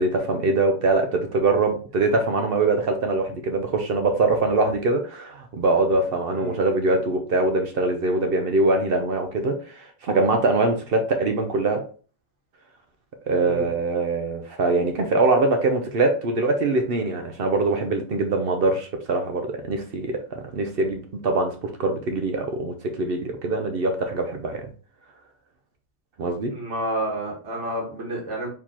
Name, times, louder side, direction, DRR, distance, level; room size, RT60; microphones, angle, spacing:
voice 1, 0.0-11.8 13.3-24.7 26.2-26.5, right 2 dB, 60° right, 5 dB, 0.8 m, -23 dB
voice 2, 6.3-6.6 13.4-13.7 26.4-28.5, right 1 dB, 85° right, -3 dB, 1.8 m, -30 dB
4.6 x 3.8 x 2.8 m, 0.40 s
omnidirectional pair, 1.2 m